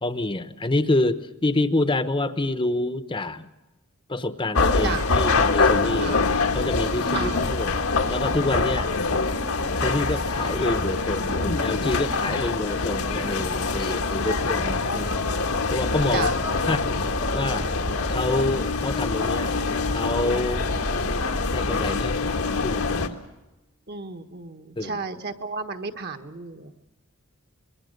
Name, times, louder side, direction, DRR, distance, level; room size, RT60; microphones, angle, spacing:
voice 1, 0.0-3.5 4.1-7.8 8.1-8.9 9.8-15.2 15.7-16.3 16.7-17.1 17.3-17.7 18.1-20.7 21.5-23.2 24.8-25.0, left 2 dB, 25° left, 10 dB, 0.9 m, -27 dB
sound 1, 4.5-23.1, left 3 dB, 85° left, 1.8 m, -24 dB
voice 2, 7.1-7.5 14.2-14.4 16.1-16.3 23.9-26.8, right 4 dB, 50° right, 7 dB, 1.4 m, -33 dB
25.5 x 22.0 x 6.6 m, 1.1 s
head